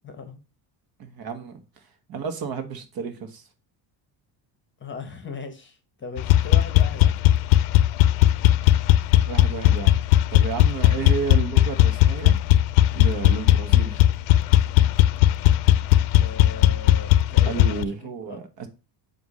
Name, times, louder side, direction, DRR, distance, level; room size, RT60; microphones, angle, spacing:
voice 1, 0.0-0.4 4.8-7.1 16.2-18.4, left 4 dB, 25° left, 1.0 m, -38 dB
voice 2, 1.0-1.6 2.1-3.5 9.2-10.0 10.3-12.4 12.9-14.0 17.4-18.7, right 6 dB, 50° right, 1.2 m, -32 dB
sound 1, 6.2-17.8, left 13 dB, 85° left, 0.6 m, -17 dB
7.8 x 2.6 x 5.3 m
cardioid pair, 135°, 48 cm